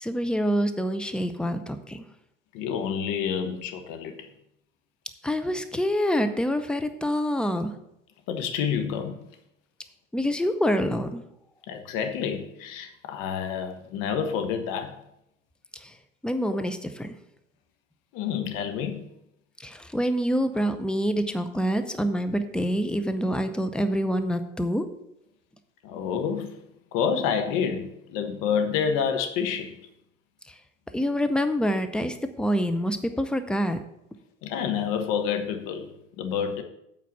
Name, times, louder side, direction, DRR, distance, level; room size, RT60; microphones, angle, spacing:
voice 1, 0.0-2.0 5.2-7.7 10.1-11.2 16.2-17.1 19.6-24.9 30.9-33.8, equal, ahead, 8 dB, 0.7 m, -26 dB
voice 2, 2.5-4.1 8.3-9.2 11.7-14.9 16.5-16.6 18.1-19.0 25.8-26.6 26.9-29.8 34.4-35.9 36.2-36.6, left 7 dB, 50° left, 7 dB, 1.3 m, -28 dB
8.4 x 4.6 x 7.3 m, 0.82 s
figure-of-eight pair, 70°, 40 cm